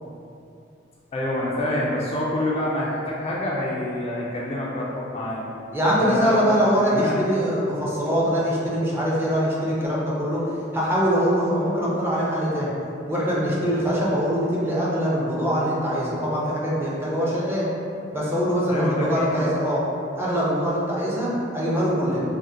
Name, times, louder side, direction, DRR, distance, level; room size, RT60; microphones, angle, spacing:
voice 1, 1.1-5.4 6.0-7.2 18.7-19.5, left 1 dB, 35° left, -5 dB, 0.3 m, -27 dB
voice 2, 5.7-12.7 13.1-17.7 18.1-19.8 20.1-22.2, equal, 15° right, -7 dB, 0.5 m, -23 dB
3.6 x 2.1 x 2.7 m, 2.6 s
head